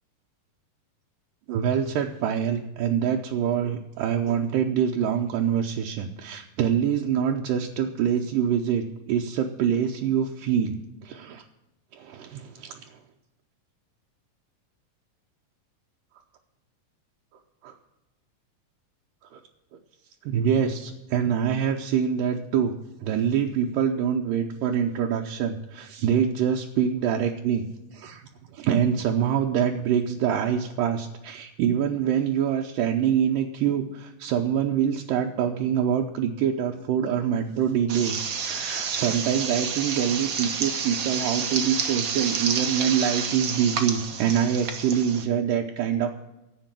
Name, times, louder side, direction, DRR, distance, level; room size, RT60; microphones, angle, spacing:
voice 1, 1.5-11.4 11.9-13.0 17.6-17.7 19.3-19.4 20.3-22.7 23.0-27.7 27.9-28.2 28.5-46.1, right 8 dB, 75° right, 1 dB, 2.5 m, -25 dB
sound 1, 37.9-45.2, right 6 dB, 55° right, 1.4 m, -29 dB
11.5 x 8.2 x 8.9 m, 0.96 s
omnidirectional pair, 4.0 m